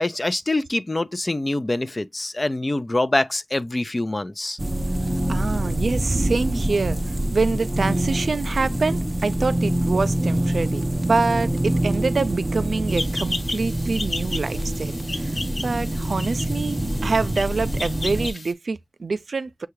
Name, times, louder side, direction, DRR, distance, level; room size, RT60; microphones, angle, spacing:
voice 1, 0.0-4.6, left 2 dB, 30° left, 0.5 m, -25 dB
sound 1, 4.6-18.3, right 1 dB, 25° right, 0.5 m, -25 dB
voice 2, 5.3-19.7, right 4 dB, 80° right, 0.4 m, -26 dB
sound 2, 12.9-18.5, left 2 dB, 75° left, 1.3 m, -34 dB
6.6 x 2.3 x 3.0 m
wide cardioid pair, 80°, 0 cm